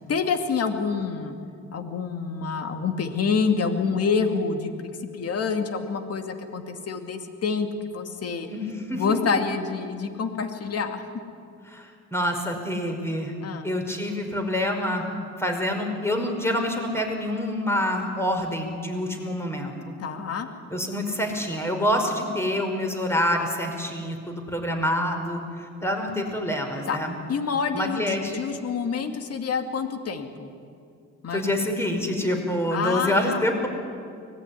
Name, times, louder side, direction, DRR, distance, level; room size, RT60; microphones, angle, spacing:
voice 1, 0.1-1.4 1.7-8.5 8.9-11.0 13.4-13.7 20.0-20.5 26.9-27.0 27.3-30.5 31.2-31.6 32.7-33.4, left 5 dB, 55° left, 6 dB, 2.5 m, -27 dB
voice 2, 8.5-9.0 11.7-13.3 13.6-15.1 15.4-19.9 20.7-27.2 27.7-28.4 31.3-33.7, left 1 dB, 10° left, 3 dB, 5.1 m, -27 dB
24.5 x 19.5 x 9.9 m, 2.3 s
cardioid pair, 90°, 30 cm